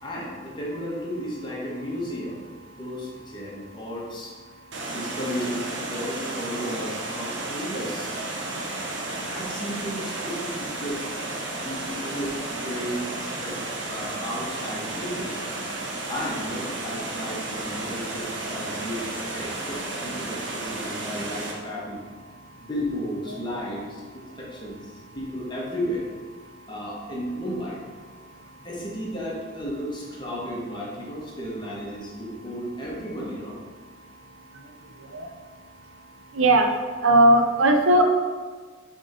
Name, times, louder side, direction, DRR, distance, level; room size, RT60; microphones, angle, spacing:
voice 1, 0.0-2.4 2.8-4.3 4.9-8.1 9.3-11.1 11.6-15.5 16.1-22.0 22.6-24.0 24.4-26.1 26.7-27.8 28.6-33.6, equal, 25° left, -5 dB, 1.6 m, -33 dB
Water, 4.7-21.5, right 2 dB, 60° right, 1.1 m, -33 dB
voice 2, 36.4-36.7 37.0-38.0, right 1 dB, 80° right, 4 dB, 0.8 m, -17 dB
7.4 x 3.7 x 5.4 m, 1.5 s
head